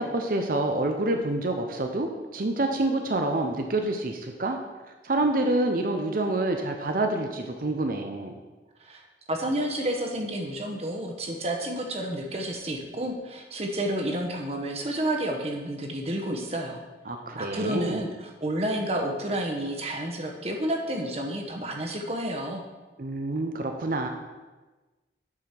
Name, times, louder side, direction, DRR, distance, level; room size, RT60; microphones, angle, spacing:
voice 1, 0.0-4.6 5.0-8.3 17.1-18.0 23.0-24.1, right 2 dB, 50° right, 4 dB, 0.7 m, -27 dB
voice 2, 9.3-16.8 17.4-22.6, right 1 dB, 35° right, 2 dB, 1.1 m, -30 dB
8.4 x 4.9 x 6.0 m, 1.2 s
head